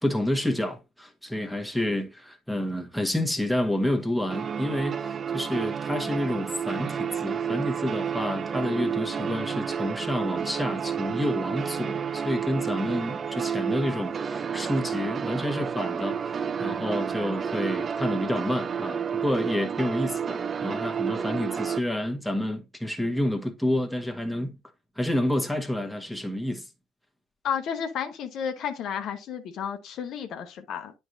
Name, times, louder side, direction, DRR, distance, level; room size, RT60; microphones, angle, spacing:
voice 1, 0.0-24.6 25.0-26.6, left 1 dB, ahead, 1.4 m, -29 dB
sound 1, 4.3-21.8, right 7 dB, 35° right, 0.4 m, -30 dB
voice 2, 27.4-30.9, left 8 dB, 50° left, 0.9 m, -32 dB
10.5 x 4.5 x 2.6 m
figure-of-eight pair, 55°, 0 cm